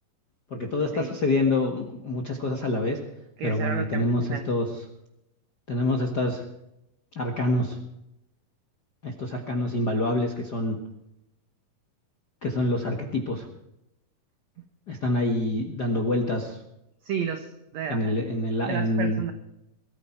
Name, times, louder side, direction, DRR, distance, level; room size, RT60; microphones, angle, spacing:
voice 1, 0.5-3.0 3.4-4.2 4.5-4.7 5.7-6.4 7.1-7.8 9.0-10.8 12.4-13.5 14.9-16.6 17.9-19.2, left 2 dB, 45° left, 2 dB, 1.3 m, -26 dB
voice 2, 3.4-4.5 17.0-18.2 18.7-19.3, right 7 dB, 65° right, 7 dB, 1.9 m, -32 dB
21.5 x 14.0 x 4.5 m, 0.85 s
omnidirectional pair, 4.2 m